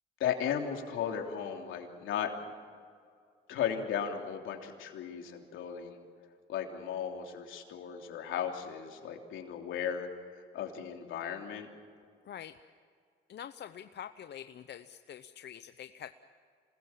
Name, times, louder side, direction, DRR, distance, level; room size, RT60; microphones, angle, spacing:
voice 1, 0.2-2.3 3.5-6.0 6.5-10.1 10.5-11.7, left 8 dB, 80° left, 2 dB, 3.3 m, -35 dB
voice 2, 12.3-12.6 13.3-16.1, left 9 dB, 60° left, 10 dB, 0.8 m, -45 dB
27.0 x 20.0 x 7.5 m, 2.2 s
cardioid pair, 90°, 20 cm